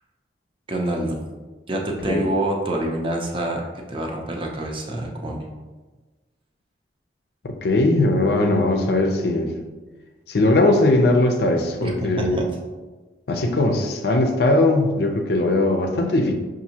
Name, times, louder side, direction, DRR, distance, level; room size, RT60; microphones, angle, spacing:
voice 1, 0.7-1.2 1.7-5.4 11.8-12.5, right 1 dB, 30° right, 0 dB, 0.5 m, -26 dB
voice 2, 7.4-9.5 10.3-12.4 13.3-16.3, left 2 dB, 65° left, 3 dB, 0.5 m, -19 dB
5.9 x 2.6 x 2.8 m, 1.3 s
head